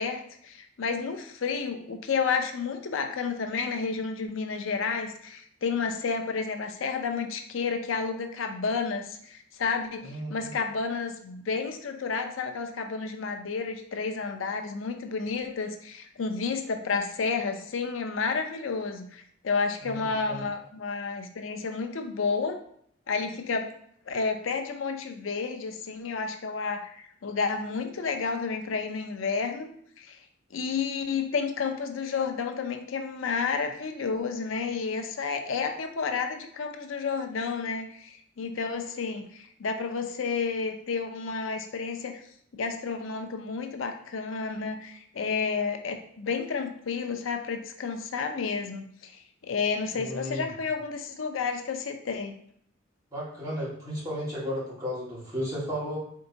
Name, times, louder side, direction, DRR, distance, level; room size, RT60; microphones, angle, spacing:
voice 1, 0.0-22.6 23.1-23.7 24.1-29.7 30.0-30.2 30.5-42.2 42.6-49.1 49.4-52.3, left 5 dB, 90° left, 6 dB, 0.5 m, -31 dB
voice 2, 10.0-10.5 19.8-20.4 49.9-50.5 53.1-56.0, equal, 20° right, -8 dB, 1.7 m, -34 dB
4.5 x 3.8 x 2.6 m, 0.65 s
head